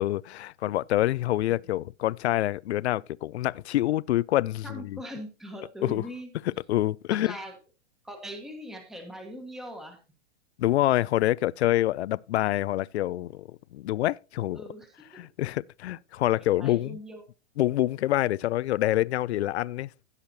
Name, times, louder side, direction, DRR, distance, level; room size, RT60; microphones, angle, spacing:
voice 1, 0.0-5.0 5.8-6.0 6.4-7.3 10.6-14.6 15.1-17.0 17.6-19.9, left 15 dB, 65° left, 0.5 m, -26 dB
voice 2, 4.6-6.3 7.1-7.6 8.0-10.0 14.5-14.9 16.4-17.2, equal, ahead, 1.2 m, -41 dB
16.5 x 6.5 x 2.7 m
hypercardioid pair, 165°, 35 cm